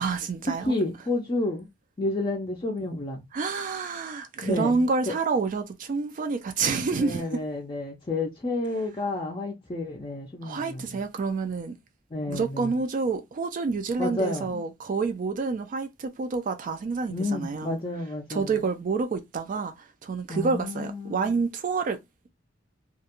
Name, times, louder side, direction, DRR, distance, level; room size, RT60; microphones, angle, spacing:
voice 1, 0.0-0.7 3.3-7.4 10.4-11.7 12.3-17.8 18.3-22.0, right 4 dB, 45° right, 0.3 m, -28 dB
voice 2, 0.6-1.7 2.0-3.2 4.4-5.2 7.0-11.0 12.1-12.8 14.0-14.6 17.1-18.6 20.3-21.4, left 2 dB, 25° left, 0.4 m, -30 dB
2.3 x 2.1 x 2.8 m
head